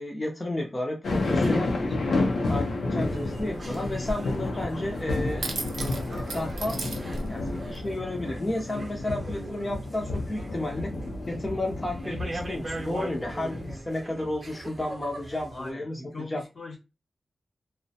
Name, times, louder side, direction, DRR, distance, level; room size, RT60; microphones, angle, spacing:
voice 1, 0.0-2.0 2.5-5.5 6.3-6.8 7.3-10.9 11.3-16.0 16.3-16.4, left 1 dB, 25° left, 0.5 m, -32 dB
sound 1, 1.0-13.8, left 2 dB, 85° left, 0.5 m, -31 dB
sound 2, 3.0-7.9, right 2 dB, 75° right, 0.4 m, -38 dB
sound 3, 3.1-15.7, right 2 dB, 35° right, 0.6 m, -42 dB
voice 2, 15.5-16.8, left 3 dB, 65° left, 0.9 m, -41 dB
2.3 x 2.0 x 2.6 m
wide cardioid pair, 120°, 0 cm